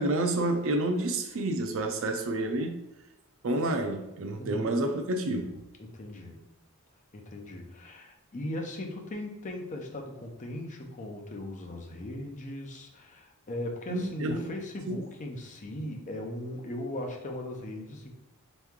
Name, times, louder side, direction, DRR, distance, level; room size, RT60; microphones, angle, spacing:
voice 1, 0.0-2.8 3.4-5.6 13.9-14.4 14.9-15.0, right 2 dB, 65° right, 0.5 m, -29 dB
voice 2, 4.3-4.8 5.8-6.4 7.1-18.1, left 1 dB, 35° left, 0.7 m, -38 dB
3.6 x 3.1 x 3.6 m
head